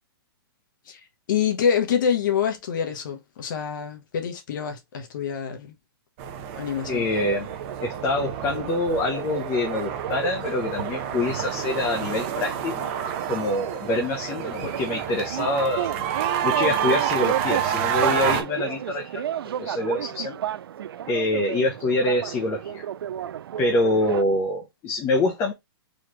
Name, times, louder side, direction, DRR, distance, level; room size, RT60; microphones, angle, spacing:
voice 1, 1.3-5.7 6.6-7.0, left 7 dB, 55° left, 1.2 m, -26 dB
sound 1, 6.2-18.4, right 9 dB, 30° right, 0.8 m, -29 dB
voice 2, 6.9-7.5 7.8-12.8 13.3-16.0 16.4-19.2 19.6-20.4 21.1-22.8 23.6-25.5, left 2 dB, 20° left, 0.8 m, -25 dB
sound 2, 7.1-24.2, right 10 dB, 80° right, 0.4 m, -33 dB
4.2 x 3.1 x 3.0 m
hypercardioid pair, 160°, 12 cm